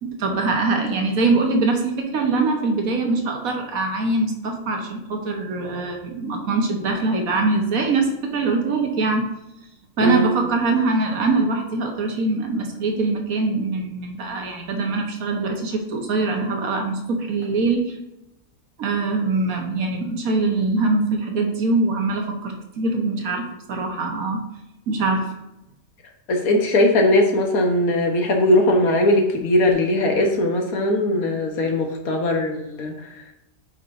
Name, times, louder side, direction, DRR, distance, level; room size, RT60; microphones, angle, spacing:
voice 1, 0.0-8.1 8.3-9.2 10.0-17.9 18.8-23.4 23.7-24.4 24.9-25.3, right 3 dB, 70° right, 2 dB, 1.5 m, -23 dB
voice 2, 10.0-10.3 26.3-33.1, left 1 dB, 75° left, 2 dB, 1.5 m, -19 dB
8.7 x 5.1 x 2.6 m, 0.89 s
omnidirectional pair, 1.6 m